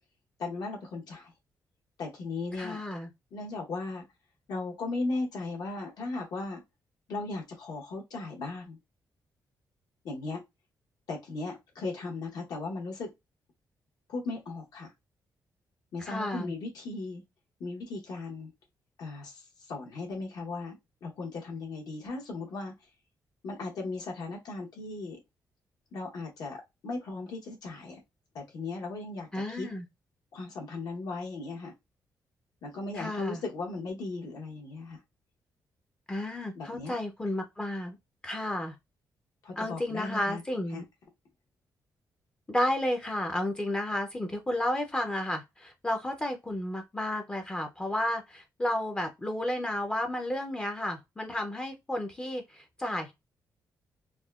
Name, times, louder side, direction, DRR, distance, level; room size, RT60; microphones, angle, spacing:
voice 1, 0.4-1.3 2.0-2.8 3.3-4.0 4.5-6.6 7.1-8.8 10.0-10.4 11.1-13.1 14.1-14.9 15.9-17.2 17.6-18.5 19.0-22.7 23.4-25.2 25.9-26.6 26.8-28.0 28.3-29.7 30.3-31.7 32.6-35.0 36.5-36.9 39.4-40.4 40.7-40.8, left 3 dB, 75° left, 0.8 m, -37 dB
voice 2, 2.6-3.1 16.0-16.5 29.3-29.9 33.0-33.4 36.1-38.0 38.2-38.8 39.6-40.8 42.5-53.1, left 1 dB, 15° left, 0.3 m, -32 dB
3.5 x 2.1 x 2.2 m
wide cardioid pair, 170°, 7 cm